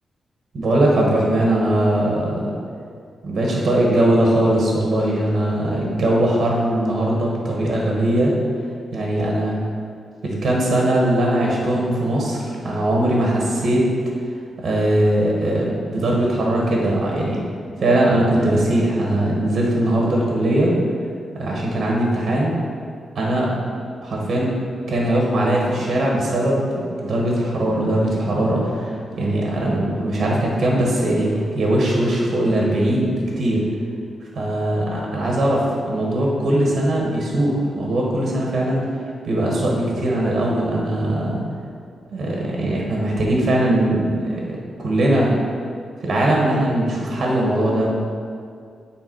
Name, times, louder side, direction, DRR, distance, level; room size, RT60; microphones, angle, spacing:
voice 1, 0.5-2.5 3.2-8.3 8.9-9.5 10.2-13.9 14.6-17.4 17.8-20.7 21.3-22.5 23.1-23.5 24.0-24.5 24.9-33.6 34.3-38.9 39.2-41.4 42.1-45.3 46.0-47.9, right 1 dB, 50° right, -2 dB, 1.3 m, -20 dB
8.7 x 3.6 x 4.6 m, 2.2 s
wide cardioid pair, 160°, 0 cm